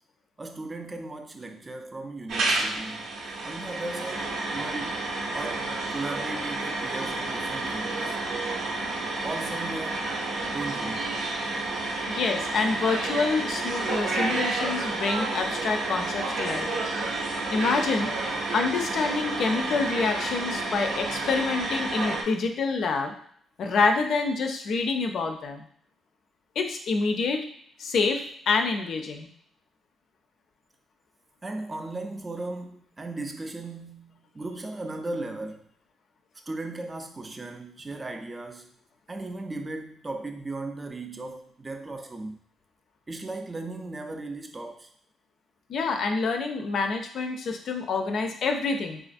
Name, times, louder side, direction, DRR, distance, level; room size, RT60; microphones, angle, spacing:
voice 1, 0.4-3.0 3.4-5.0 5.3-8.2 9.2-10.1 10.5-11.2 31.4-35.6 36.5-38.7 39.1-42.4 43.1-44.9, right 2 dB, 25° right, 4 dB, 0.4 m, -37 dB
sound 1, 2.3-22.2, right 2 dB, 80° right, 0.6 m, -30 dB
voice 2, 12.1-16.7 17.5-23.1 23.6-25.7 26.6-27.4 27.8-29.3 45.7-49.0, left 4 dB, 65° left, 4 dB, 0.4 m, -27 dB
3.7 x 2.4 x 2.5 m, 0.64 s
cardioid pair, 90°, 0 cm